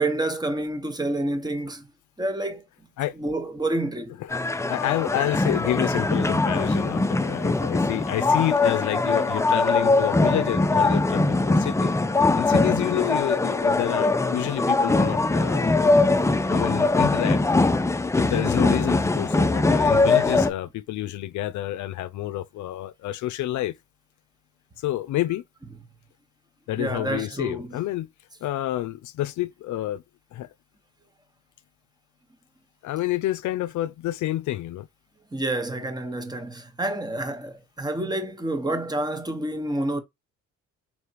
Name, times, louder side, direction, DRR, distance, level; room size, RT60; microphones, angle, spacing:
voice 1, 0.0-1.9 2.2-2.6 3.2-4.2 26.8-27.8 35.3-40.0, right 2 dB, 15° right, 1.2 m, -28 dB
sound 1, 4.3-20.5, left 3 dB, 10° left, 0.5 m, -22 dB
voice 2, 4.7-11.9 12.3-15.9 16.5-17.6 18.2-23.7 24.8-25.4 26.7-28.1 28.4-30.0 30.3-30.5 32.8-34.9, left 14 dB, 75° left, 0.5 m, -29 dB
4.4 x 3.3 x 2.9 m
cardioid pair, 90°, 30 cm